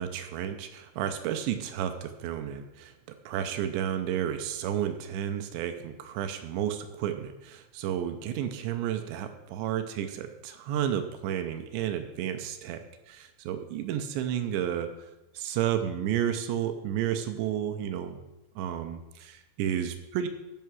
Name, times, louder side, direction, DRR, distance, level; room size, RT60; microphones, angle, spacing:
voice 1, 0.0-15.1 15.3-18.2 18.6-20.3, right 10 dB, 85° right, 8 dB, 2.8 m, -32 dB
12.5 x 5.7 x 6.2 m, 0.98 s
omnidirectional pair, 5.4 m